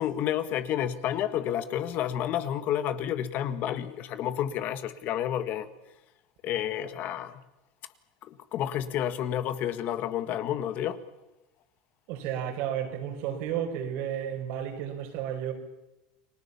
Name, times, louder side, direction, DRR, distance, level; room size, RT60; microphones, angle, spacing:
voice 1, 0.0-5.7 6.4-7.4 8.2-11.0, left 10 dB, 45° left, 1.7 m, -30 dB
voice 2, 12.1-15.5, right 9 dB, 60° right, 5.2 m, -32 dB
29.5 x 20.0 x 7.2 m
supercardioid pair, 120°, 4 cm